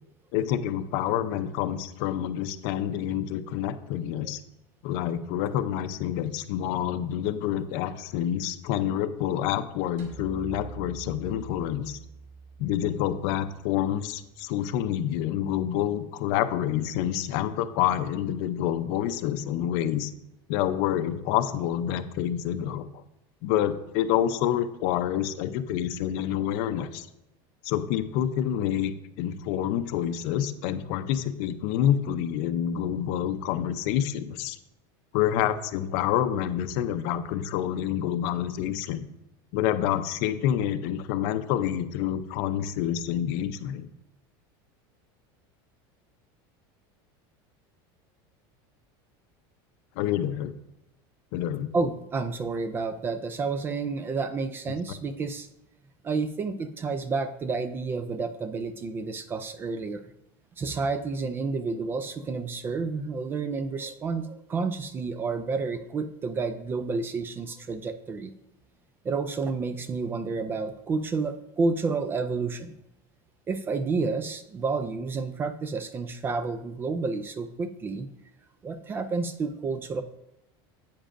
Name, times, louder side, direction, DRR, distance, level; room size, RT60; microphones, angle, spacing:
voice 1, 0.3-4.4 4.8-12.0 12.6-20.1 20.5-22.8 23.4-27.1 27.6-34.6 35.1-39.0 39.5-43.9 50.0-50.5 51.3-51.7, left 10 dB, 60° left, 10 dB, 0.6 m, -28 dB
sound 1, 10.0-14.4, right 4 dB, 55° right, 2.4 m, -46 dB
voice 2, 51.7-55.5 56.0-60.0 60.6-68.3 69.0-72.7 73.5-78.1 78.6-80.0, right 4 dB, 20° right, 11 dB, 0.3 m, -30 dB
10.0 x 8.7 x 2.5 m, 0.88 s
cardioid pair, 165°, 12 cm